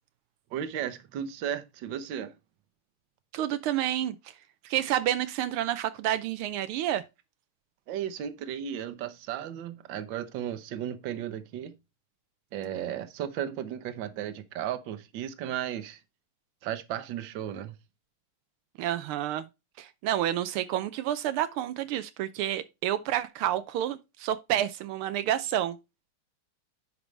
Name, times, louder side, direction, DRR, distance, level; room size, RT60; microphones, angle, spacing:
voice 1, 0.5-2.3 7.9-11.7 12.5-16.0 16.6-17.8, right 10 dB, 65° right, 1.5 m, -35 dB
voice 2, 3.3-4.3 4.6-7.0 18.8-19.5 19.8-25.8, right 12 dB, 85° right, 1.5 m, -29 dB
10.5 x 4.8 x 3.2 m
omnidirectional pair, 2.4 m